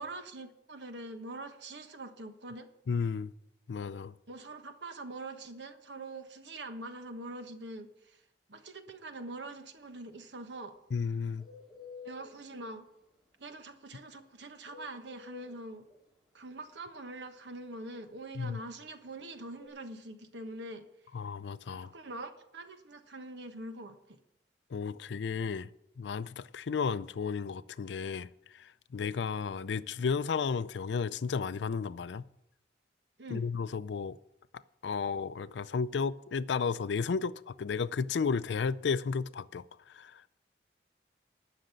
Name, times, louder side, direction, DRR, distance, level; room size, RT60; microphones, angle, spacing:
voice 1, 0.0-2.7 4.3-8.2 8.5-10.7 12.0-12.9 13.4-15.9 16.3-20.9 21.7-24.2 33.2-33.5, right 2 dB, 90° right, 1.3 m, -44 dB
voice 2, 2.9-3.3 3.7-4.1 10.9-11.5 18.4-18.6 21.1-21.9 24.7-25.7 26.0-28.3 28.5-32.2 33.3-34.2 34.8-39.6 39.9-40.3, left 5 dB, 85° left, 0.4 m, -33 dB
Bird, 9.8-19.7, left 5 dB, ahead, 2.7 m, -53 dB
11.5 x 6.5 x 9.0 m
head